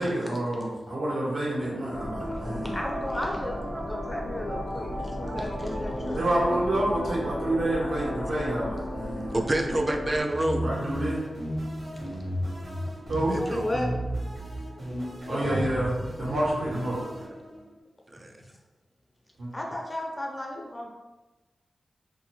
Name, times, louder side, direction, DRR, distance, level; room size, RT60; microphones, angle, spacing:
voice 1, 0.0-2.8 6.2-9.4 10.6-11.3 13.1-13.4 15.3-17.0 19.4-19.5, right 1 dB, 80° right, -6 dB, 1.0 m, -28 dB
sound 1, 1.6-9.8 10.3-17.7, equal, 60° right, 1.0 m, -35 dB
sound 2, 1.9-10.2, left 1 dB, 80° left, 0.5 m, -36 dB
voice 2, 2.3-4.9 5.2-6.6 13.5-13.9 15.3-15.6 19.5-20.9, left 1 dB, 25° left, -1 dB, 0.7 m, -34 dB
voice 3, 9.3-10.7 13.3-13.6, right 1 dB, 35° right, 4 dB, 0.3 m, -27 dB
2.5 x 2.1 x 3.1 m, 1.1 s
cardioid pair, 50°, 0 cm